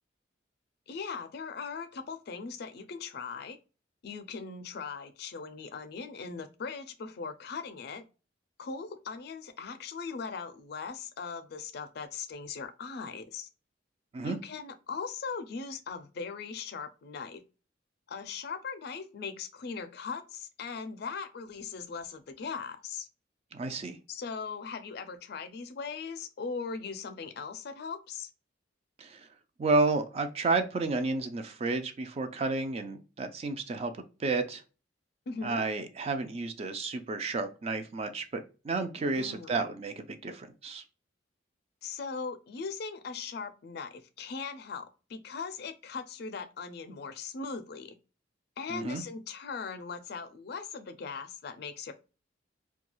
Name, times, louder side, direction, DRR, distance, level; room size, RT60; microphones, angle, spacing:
voice 1, 0.9-3.6 4.0-8.0 8.6-13.5 14.2-17.4 18.1-23.1 24.1-28.3 35.3-35.6 39.1-39.6 41.8-47.9 48.6-51.9, left 5 dB, 60° left, 0.4 m, -39 dB
voice 2, 23.5-24.0 29.0-29.2 29.6-33.9 34.2-34.6 35.4-40.8 48.7-49.0, right 3 dB, 35° right, 0.3 m, -31 dB
2.3 x 2.3 x 2.9 m
head